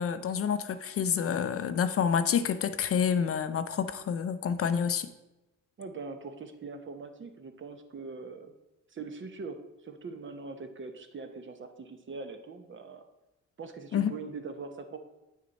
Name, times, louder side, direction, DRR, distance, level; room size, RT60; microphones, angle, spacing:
voice 1, 0.0-5.1 13.9-14.1, left 7 dB, 50° left, 11 dB, 0.5 m, -28 dB
voice 2, 5.8-8.5 8.9-13.0 13.6-15.0, right 4 dB, 40° right, 7 dB, 0.9 m, -42 dB
8.6 x 6.2 x 4.1 m, 1.0 s
cardioid pair, 90°, 30 cm